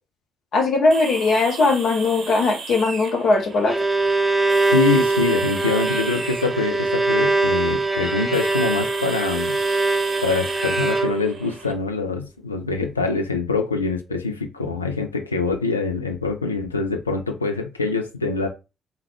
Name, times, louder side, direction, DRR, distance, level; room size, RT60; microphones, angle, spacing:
voice 1, 0.5-3.7, left 3 dB, 60° left, 2 dB, 0.9 m, -19 dB
sound 1, 0.9-11.7, right 4 dB, 55° right, 0.7 m, -37 dB
Bowed string instrument, 3.4-11.5, right 3 dB, 5° right, 0.6 m, -22 dB
voice 2, 4.7-9.6 10.2-18.5, left 4 dB, 90° left, 4 dB, 0.3 m, -24 dB
3.4 x 2.2 x 3.2 m, 0.28 s
figure-of-eight pair, 40°, 0 cm